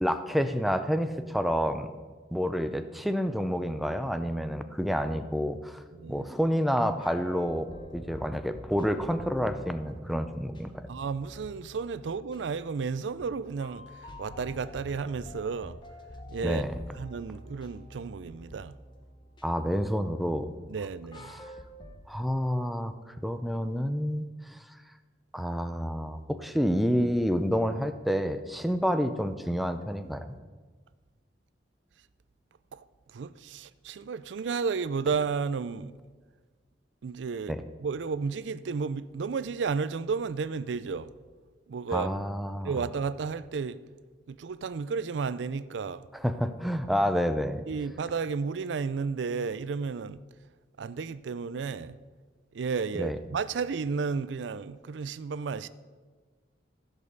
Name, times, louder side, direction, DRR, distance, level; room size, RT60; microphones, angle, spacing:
voice 1, 0.0-1.9 2.3-10.9 16.4-16.8 19.4-20.5 21.3-21.4 22.1-22.9 23.2-24.6 25.3-30.4 37.5-37.6 41.9-42.8 46.2-47.6 53.0-53.2, equal, ahead, 0.5 m, -29 dB
voice 2, 5.9-6.3 10.9-13.9 14.2-15.8 16.3-16.6 17.0-18.7 20.7-21.3 32.7-32.8 33.1-35.9 37.0-37.6 37.8-41.1 41.7-42.1 42.6-43.8 44.3-46.0 47.7-50.2 50.8-52.0 52.5-55.7, right 5 dB, 85° right, 0.4 m, -32 dB
sound 1, 7.0-22.0, equal, 25° left, 1.0 m, -47 dB
14.5 x 5.5 x 6.7 m
head